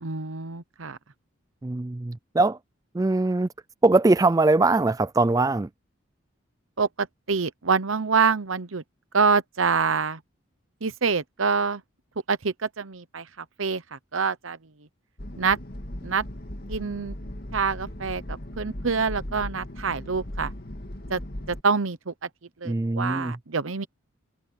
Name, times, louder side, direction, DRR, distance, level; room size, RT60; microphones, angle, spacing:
voice 1, 0.0-1.0 6.8-8.8 9.1-10.2 10.8-11.8 12.3-14.6 15.4-15.6 16.0-16.2 16.7-17.1 17.5-20.5 21.1-21.2 21.5-22.1 22.6-23.9, right 5 dB, 80° right, 1.0 m, -26 dB
voice 2, 1.6-2.6 2.9-3.5 3.8-5.7 22.6-23.4, right 2 dB, 15° right, 0.4 m, -21 dB
sound 1, 15.2-21.6, left 1 dB, 50° left, 2.2 m, -37 dB
head